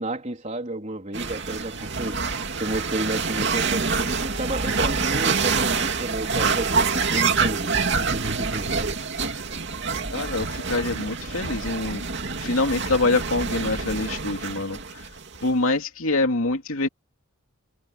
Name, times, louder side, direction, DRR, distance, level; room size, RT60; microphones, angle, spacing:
voice 1, 0.0-2.2 2.6-9.0, right 1 dB, 30° right, 3.8 m, -31 dB
sound 1, 1.1-15.5, right 5 dB, 50° right, 2.7 m, -26 dB
voice 2, 10.1-12.0 12.4-15.0 15.4-16.9, left 2 dB, 70° left, 2.6 m, -25 dB
head